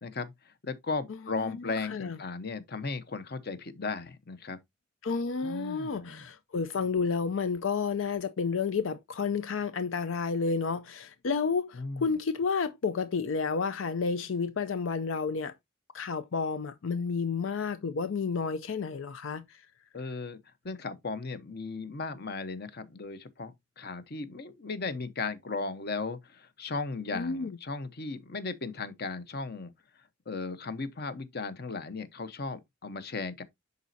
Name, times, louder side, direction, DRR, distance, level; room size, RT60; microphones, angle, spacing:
voice 1, 0.0-4.6 5.4-6.3 11.7-12.2 19.9-20.4 20.6-29.7 30.3-33.4, left 4 dB, 55° left, 0.9 m, -36 dB
voice 2, 1.4-2.2 5.0-15.5 15.9-19.4 27.1-27.5, left 5 dB, 90° left, 0.5 m, -31 dB
10.5 x 4.1 x 2.7 m
head